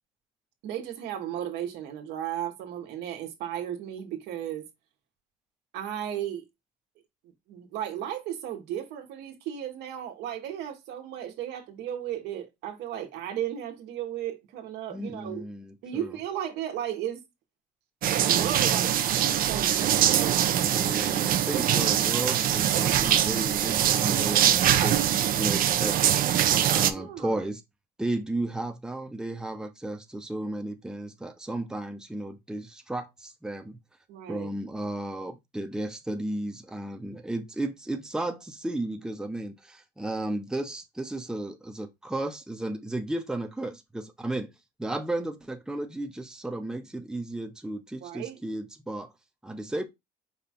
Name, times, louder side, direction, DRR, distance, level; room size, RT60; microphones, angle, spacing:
voice 1, 0.6-4.7 5.7-6.4 7.5-15.4 15.8-17.2 18.1-20.4 26.7-27.4 34.1-34.5 48.0-48.4, right 10 dB, 90° right, 1.3 m, -35 dB
voice 2, 14.9-16.1 20.6-24.4 24.8-26.0 26.4-27.6 28.0-33.8 34.3-44.5 44.8-49.1 49.4-49.8, right 1 dB, 5° right, 0.7 m, -34 dB
sound 1, 18.0-26.9, right 10 dB, 60° right, 0.6 m, -23 dB
5.3 x 2.3 x 4.2 m
cardioid pair, 110°, 17 cm